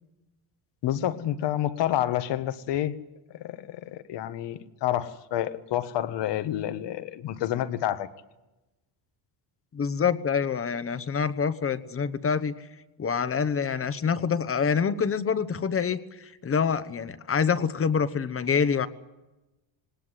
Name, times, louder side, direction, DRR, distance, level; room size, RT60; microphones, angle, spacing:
voice 1, 0.8-3.0 3.3-8.1, left 12 dB, 60° left, 1.4 m, -29 dB
voice 2, 9.7-12.7 13.0-18.9, left 6 dB, 30° left, 1.1 m, -26 dB
19.5 x 18.5 x 9.9 m
cardioid pair, 115°, 47 cm